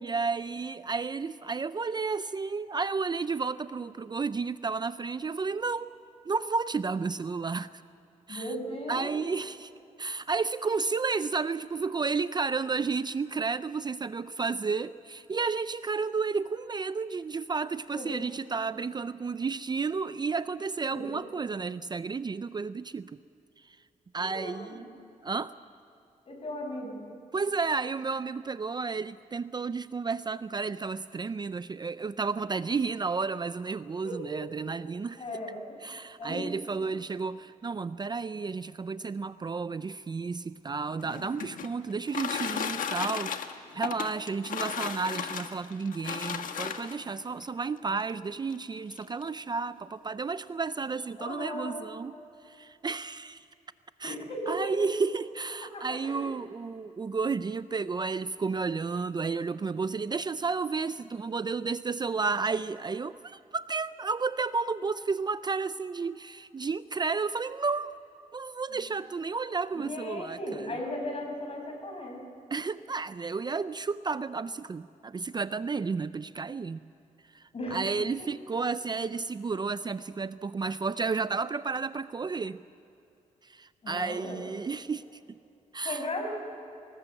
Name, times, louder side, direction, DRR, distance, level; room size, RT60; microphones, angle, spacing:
voice 1, 0.0-5.9 6.3-7.7 8.3-8.5 8.9-9.7 10.0-23.2 23.6-23.8 24.1-24.9 25.2-25.5 27.3-35.2 35.8-43.4 43.7-52.1 52.4-53.5 54.0-54.2 54.5-68.0 68.3-70.8 72.5-76.8 77.3-82.6 83.4-85.4 85.7-86.1, right 4 dB, 30° right, 14 dB, 0.5 m, -32 dB
voice 2, 8.3-9.1 17.9-18.3 20.9-21.1 24.3-24.9 26.3-27.0 34.0-34.3 35.2-35.8 36.2-36.5 51.2-51.8 54.0-54.9 55.7-56.3 68.7-68.8 69.7-72.2 77.5-77.8 78.2-78.3 83.8-84.4 85.8-86.2, left 1 dB, 45° left, 2 dB, 6.2 m, -37 dB
sound 1, 40.9-47.1 48.0-48.1 48.5-48.6 48.9-49.3, left 7 dB, 75° left, 1.4 m, -35 dB
25.0 x 20.0 x 7.8 m, 2.7 s
cardioid pair, 95°, 14 cm